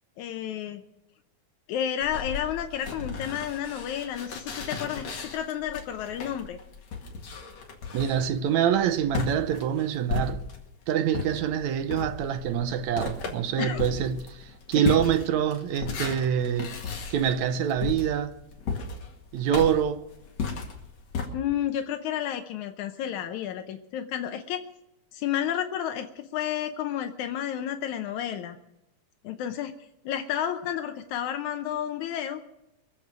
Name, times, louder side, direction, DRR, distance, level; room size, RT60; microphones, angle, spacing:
voice 1, 0.2-0.8 1.7-5.0 5.3-6.6 13.6-13.8 21.3-24.6 25.1-28.6 29.2-29.7 30.0-32.4, left 10 dB, 80° left, 2.2 m, -31 dB
sound 1, 2.0-10.7 11.1-21.3, left 5 dB, 60° left, 3.3 m, -35 dB
voice 2, 7.9-10.4 10.9-16.7 17.1-18.3 19.3-20.0, right 9 dB, 75° right, 2.1 m, -25 dB
24.0 x 8.1 x 6.2 m
omnidirectional pair, 3.4 m